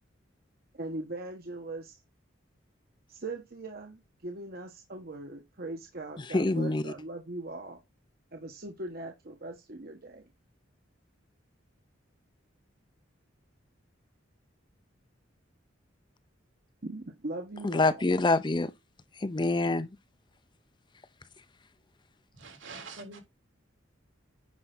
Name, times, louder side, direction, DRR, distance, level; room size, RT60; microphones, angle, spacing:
voice 1, 0.7-2.0 3.1-7.8 8.3-10.3 16.8-18.0, right 2 dB, 50° right, 1.3 m, -40 dB
voice 2, 6.3-6.9 17.6-18.7 19.2-19.9, left 2 dB, 25° left, 0.6 m, -26 dB
voice 3, 22.4-23.2, right 3 dB, 75° right, 3.4 m, -44 dB
9.7 x 5.6 x 3.9 m
head